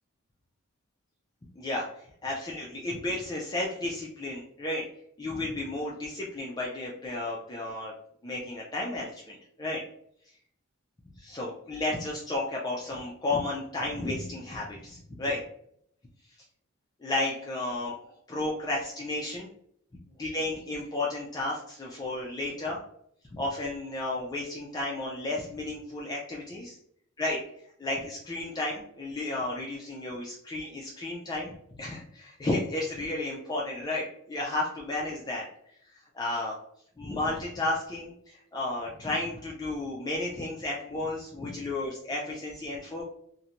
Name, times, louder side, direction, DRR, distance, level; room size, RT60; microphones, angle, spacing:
voice 1, 1.6-4.8 5.2-7.9 8.2-9.8 11.2-15.4 17.0-19.5 20.2-22.8 23.3-26.8 27.2-27.4 27.8-35.4 35.9-36.5 37.0-43.1, left 2 dB, 20° left, -4 dB, 0.3 m, -33 dB
2.5 x 2.1 x 2.8 m, 0.68 s
head